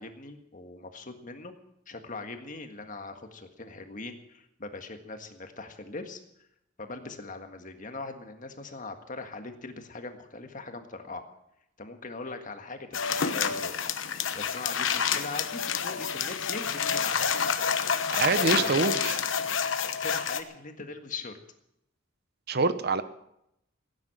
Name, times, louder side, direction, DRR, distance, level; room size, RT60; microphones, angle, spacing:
voice 1, 0.0-1.5 1.9-6.2 6.8-11.2 11.8-13.8 14.1-17.3 18.3-18.8 20.0-21.3, left 3 dB, 40° left, 6 dB, 1.6 m, -41 dB
sound 1, 12.9-20.4, left 6 dB, 70° left, 1.0 m, -28 dB
voice 2, 18.1-19.2 22.5-23.0, right 4 dB, 55° right, 12 dB, 0.9 m, -25 dB
17.0 x 9.7 x 7.7 m, 0.80 s
head